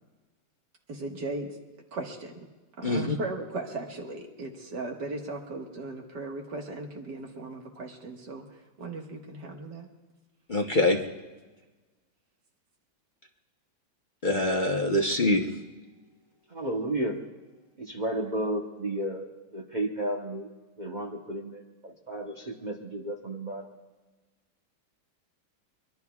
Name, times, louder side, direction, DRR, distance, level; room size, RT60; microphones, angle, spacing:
voice 1, 0.9-1.6 1.9-2.4 2.8-8.5 8.8-9.9, right 2 dB, 60° right, 1 dB, 2.2 m, -37 dB
voice 2, 2.8-3.2 10.5-11.0 14.2-15.5, left 1 dB, 40° left, 0 dB, 0.7 m, -24 dB
voice 3, 16.5-17.2 17.8-20.5 20.8-23.7, right 1 dB, 35° right, 1 dB, 0.8 m, -33 dB
24.0 x 21.5 x 2.4 m, 1.3 s
omnidirectional pair, 2.2 m